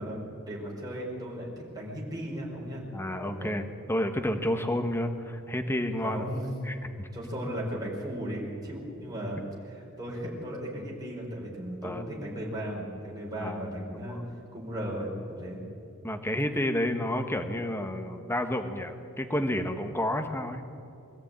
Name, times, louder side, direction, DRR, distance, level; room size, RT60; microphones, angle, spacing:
voice 1, 0.0-2.8 3.2-3.6 6.0-6.6 7.1-14.2 14.5-15.6, equal, 20° right, -4 dB, 4.7 m, -36 dB
voice 2, 2.9-6.2 6.6-7.1 11.8-12.0 13.4-14.3 16.0-20.6, left 1 dB, 10° left, 5 dB, 1.3 m, -30 dB
23.5 x 14.0 x 8.9 m, 2.6 s
head